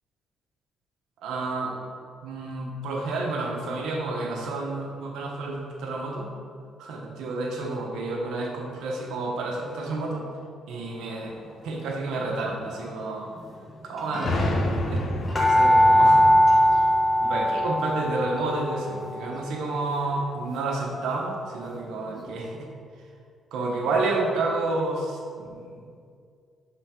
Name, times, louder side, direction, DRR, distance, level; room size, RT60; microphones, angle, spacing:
voice 1, 1.2-1.8 2.2-6.3 6.8-10.3 10.7-13.3 13.8-15.1 15.3-16.3 17.2-22.7 23.0-23.1 23.5-25.8, right 2 dB, 85° right, 0 dB, 0.9 m, -30 dB
sound 1, 12.2-12.5 13.4-13.5 13.7-13.8 14.0-21.6 22.0-22.1, equal, 30° left, 1.2 m, -22 dB
sound 2, 14.3-17.9, left 1 dB, 55° left, 0.8 m, -30 dB
6.0 x 3.8 x 5.1 m, 2.2 s
cardioid pair, 90°, 0 cm